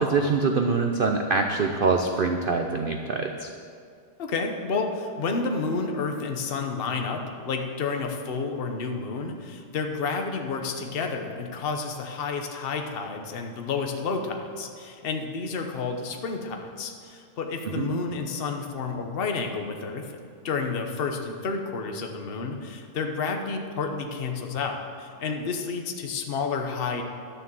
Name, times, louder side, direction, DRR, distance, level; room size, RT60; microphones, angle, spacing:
voice 1, 0.0-3.5 17.7-17.9, right 4 dB, 80° right, 4 dB, 0.4 m, -24 dB
voice 2, 4.2-20.2 20.4-27.0, left 4 dB, 40° left, 4 dB, 1.0 m, -30 dB
11.0 x 6.9 x 7.6 m, 2.3 s
omnidirectional pair, 1.8 m